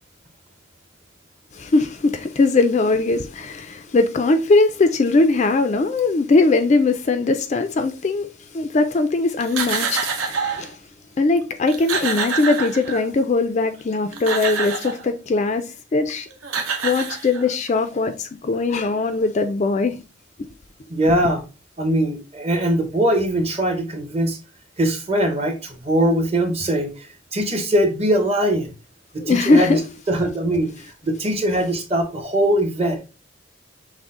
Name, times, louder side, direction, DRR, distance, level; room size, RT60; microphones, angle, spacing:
voice 1, 1.5-8.3 8.5-10.8 11.2-16.3 16.8-20.0 21.1-21.2 29.2-29.8, left 3 dB, 35° left, 0.3 m, -20 dB
sound 1, 9.4-10.7 11.4-11.5 11.7-13.2 13.9-15.0 16.1-16.2 16.4-17.7, right 5 dB, 90° right, 0.8 m, -26 dB
voice 2, 20.9-21.4 21.8-24.4 24.8-26.9 27.3-28.7 29.1-29.8 30.1-30.7 31.0-33.0, right 1 dB, 30° right, 0.9 m, -21 dB
6.1 x 2.0 x 3.6 m
head